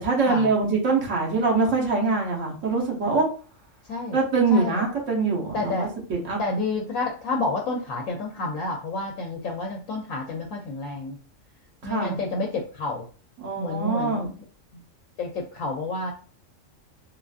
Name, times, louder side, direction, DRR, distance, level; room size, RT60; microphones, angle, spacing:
voice 1, 0.0-3.3 4.1-6.4 11.8-12.2 13.4-14.3, right 3 dB, 70° right, -1 dB, 1.3 m, -24 dB
voice 2, 4.5-4.8 5.5-5.9 6.4-11.2 11.8-13.0 13.6-14.3 14.7-14.8 15.2-16.1, left 2 dB, 90° left, 1 dB, 1.0 m, -29 dB
3.6 x 2.4 x 2.4 m, 0.39 s
omnidirectional pair, 1.4 m